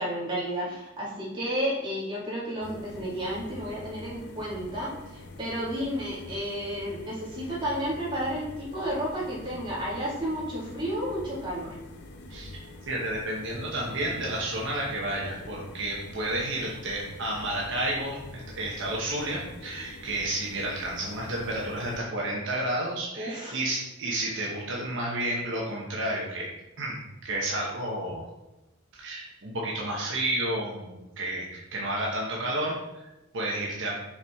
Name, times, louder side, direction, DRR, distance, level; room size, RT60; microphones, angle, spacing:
voice 1, 0.0-11.7 23.2-23.6, equal, 25° right, -6 dB, 2.0 m, -32 dB
sound 1, 2.6-22.0, left 2 dB, 55° left, 0.7 m, -45 dB
voice 2, 12.9-26.5 26.8-28.2 28.9-33.9, right 1 dB, 60° right, -3 dB, 1.0 m, -31 dB
5.6 x 4.8 x 3.6 m, 0.99 s
head